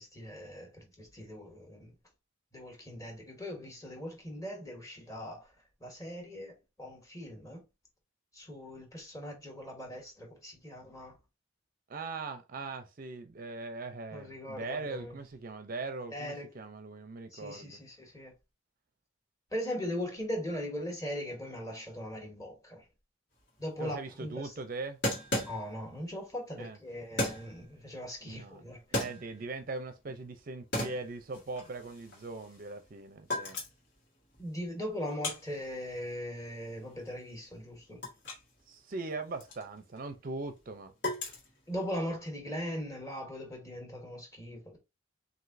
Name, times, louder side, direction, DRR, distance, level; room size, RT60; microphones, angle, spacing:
voice 1, 0.0-1.9 2.5-5.5 5.8-7.6 8.3-11.2 14.1-15.2 16.1-16.5 17.3-18.3 19.5-22.8 23.6-24.5 25.4-29.0 34.4-38.1 41.7-44.8, equal, 15° left, 1.3 m, -40 dB
voice 2, 11.9-17.7 23.8-25.0 26.6-26.8 28.2-28.6 28.9-33.6 38.7-40.9, right 3 dB, 45° right, 0.5 m, -40 dB
sound 1, 23.4-23.5 23.7-23.8 25.0-26.0 27.2-27.7 28.7-29.6 30.0-30.4 30.7-32.9 33.2-33.9 34.3-38.5 38.8-42.0, left 1 dB, 60° left, 1.8 m, -36 dB
6.2 x 2.6 x 2.6 m
head